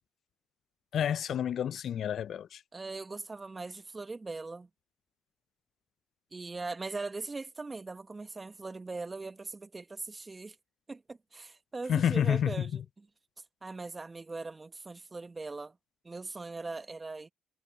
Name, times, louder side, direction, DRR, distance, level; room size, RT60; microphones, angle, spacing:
voice 1, 0.9-2.6 11.9-12.8, left 9 dB, 55° left, 0.5 m, -29 dB
voice 2, 2.7-4.7 6.3-10.6 10.9-12.8 13.6-15.8 16.0-17.3, right 3 dB, 25° right, 1.4 m, -40 dB
hypercardioid pair, 60°, 0 cm